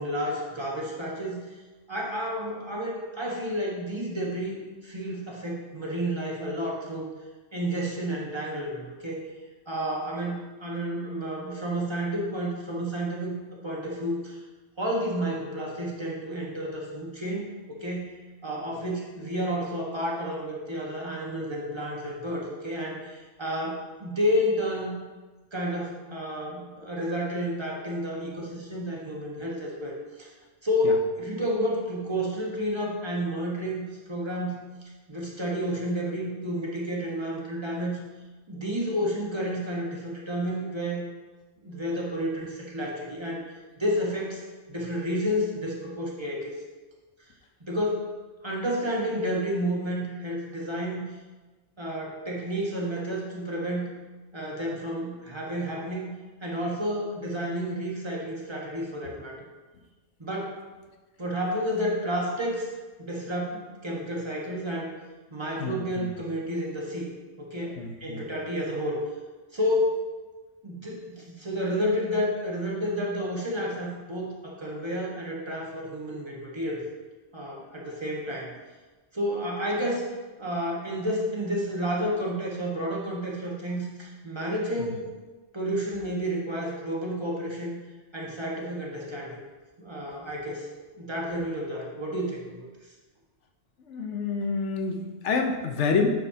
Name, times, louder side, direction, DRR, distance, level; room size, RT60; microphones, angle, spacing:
voice 1, 0.0-1.5 1.9-7.1 7.5-9.2 9.7-14.4 14.8-18.1 18.4-25.0 25.5-30.3 30.6-34.6 35.1-38.0 38.5-41.0 41.6-43.4 43.8-44.4 44.7-46.5 47.6-48.1 48.4-51.0 51.8-53.9 54.3-56.1 56.4-59.4 60.2-60.6 61.2-62.7 63.0-64.9 65.3-67.1 67.4-69.0 69.5-70.1 70.6-76.8 77.3-78.5 79.1-80.0 80.4-85.1 85.5-87.8 88.1-89.4 89.8-90.7 90.9-92.7, equal, 25° right, -3 dB, 1.3 m, -30 dB
voice 2, 65.6-66.1 67.8-68.2 84.8-84.9 93.8-96.1, left 4 dB, 75° left, 3 dB, 1.1 m, -28 dB
8.9 x 6.4 x 2.8 m, 1.3 s
omnidirectional pair, 1.2 m